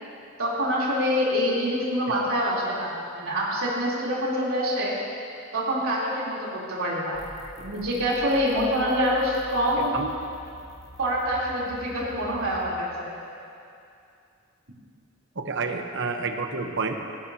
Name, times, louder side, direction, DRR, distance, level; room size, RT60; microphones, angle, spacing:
voice 1, 0.4-4.9 5.5-7.2 7.6-9.9 11.0-13.1, equal, 75° right, -6 dB, 3.6 m, -26 dB
sound 1, 7.1-12.7, equal, 15° left, 1.2 m, -46 dB
voice 2, 15.4-17.0, right 4 dB, 60° right, 4 dB, 1.0 m, -29 dB
17.5 x 17.5 x 2.9 m, 2.5 s
head